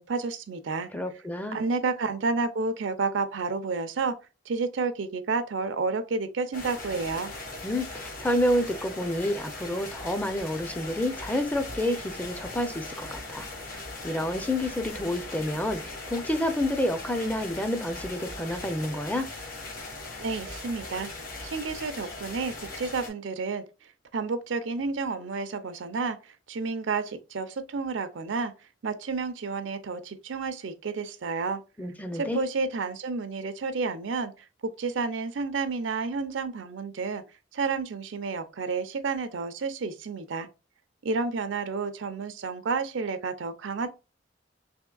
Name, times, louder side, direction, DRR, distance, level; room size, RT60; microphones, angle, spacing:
voice 1, 0.0-0.9 1.5-4.2 4.5-7.3 20.2-21.1 21.4-23.7 24.1-28.5 28.8-31.6 32.1-37.2 37.5-40.5 41.0-43.9, right 4 dB, 80° right, 0.5 m, -30 dB
voice 2, 0.9-1.6 7.6-13.5 14.0-19.3 31.8-32.4, left 1 dB, 10° left, 0.4 m, -29 dB
sound 1, 6.5-23.1, left 2 dB, 50° left, 1.1 m, -39 dB
3.5 x 3.1 x 2.3 m
head